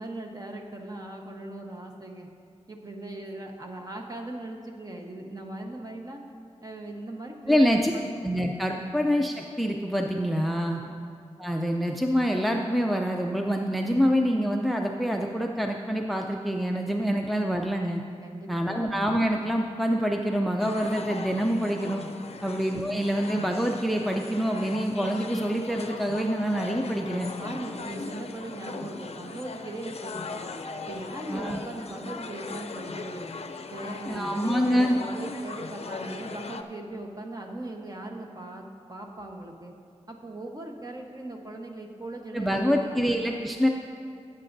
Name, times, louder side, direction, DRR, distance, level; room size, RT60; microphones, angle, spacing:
voice 1, 0.0-2.3 2.7-6.2 6.6-8.1 8.7-8.9 10.5-10.9 18.2-18.8 22.3-22.5 27.4-30.5 30.9-33.3 33.7-39.7 40.1-43.4, right 2 dB, 30° right, 1 dB, 1.1 m, -39 dB
voice 2, 7.5-7.9 8.2-10.8 11.4-18.0 18.5-22.0 22.4-27.3 31.3-31.6 34.1-35.0 42.3-43.7, equal, ahead, 2 dB, 0.5 m, -26 dB
sound 1, 20.6-36.6, left 4 dB, 60° left, 0.5 m, -39 dB
17.0 x 8.3 x 2.6 m, 2.3 s
wide cardioid pair, 100°, 12 cm